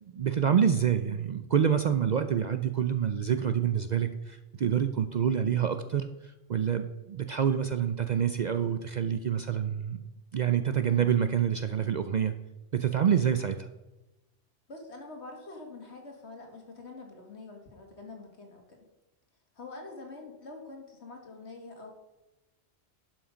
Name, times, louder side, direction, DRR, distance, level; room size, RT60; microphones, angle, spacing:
voice 1, 0.1-10.0 10.3-12.3 12.7-13.7, right 8 dB, 55° right, 9 dB, 0.5 m, -27 dB
voice 2, 14.7-18.8 19.6-21.9, left 3 dB, 70° left, 2 dB, 2.2 m, -45 dB
11.5 x 6.1 x 5.1 m, 1.0 s
omnidirectional pair, 1.2 m